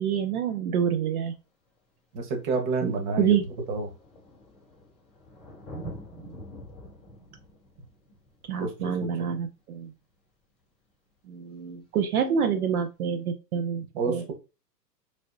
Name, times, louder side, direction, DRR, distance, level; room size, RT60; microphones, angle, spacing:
voice 1, 0.0-1.3 2.8-3.4 6.1-6.3 8.5-9.9 11.3-14.3, right 8 dB, 60° right, 6 dB, 0.6 m, -27 dB
Thunder, 1.3-1.4 2.4-2.5 2.7-10.0 11.7-11.8, right 1 dB, 10° left, 0.3 m, -46 dB
voice 2, 2.1-3.4 3.7-3.9 8.6-9.4 13.9-14.3, right 3 dB, 30° right, 4 dB, 0.9 m, -29 dB
3.7 x 3.5 x 2.5 m, 0.29 s
hypercardioid pair, 150°, 50 cm